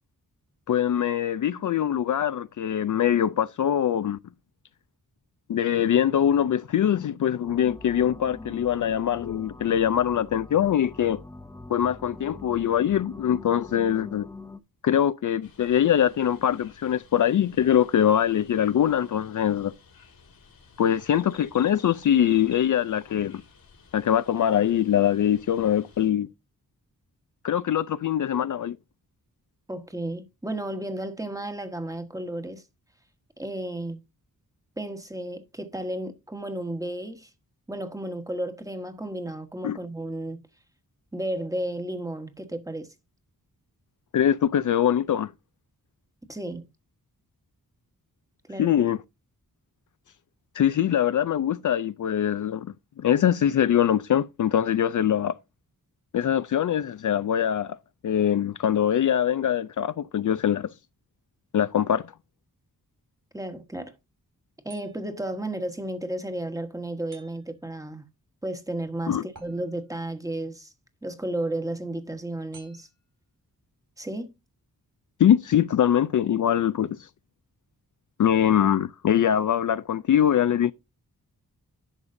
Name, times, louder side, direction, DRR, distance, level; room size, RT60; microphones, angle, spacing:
voice 1, 0.7-4.2 5.5-11.2 11.7-14.3 14.8-19.7 20.8-23.4 23.9-26.3 27.4-28.8 39.6-39.8 44.1-45.3 48.6-49.0 50.5-52.7 53.0-55.3 56.1-57.8 58.0-60.7 61.5-62.0 69.1-69.2 75.2-77.0 78.2-80.7, left 10 dB, 60° left, 0.4 m, -23 dB
sound 1, 7.4-14.6, left 2 dB, 10° left, 0.7 m, -43 dB
sound 2, 15.4-26.1, left 5 dB, 75° left, 2.3 m, -53 dB
voice 2, 29.7-32.6 33.4-34.0 34.8-37.3 37.7-40.4 41.1-42.9 46.3-46.7 48.5-48.7 63.3-64.0 64.6-68.1 68.4-70.7 71.0-72.9 74.0-74.3, right 1 dB, 10° right, 1.3 m, -33 dB
sound 3, 64.7-65.3 67.1-67.8 69.3-70.1 72.5-73.1, right 4 dB, 60° right, 5.1 m, -53 dB
11.0 x 6.6 x 2.6 m
wide cardioid pair, 125°, 36 cm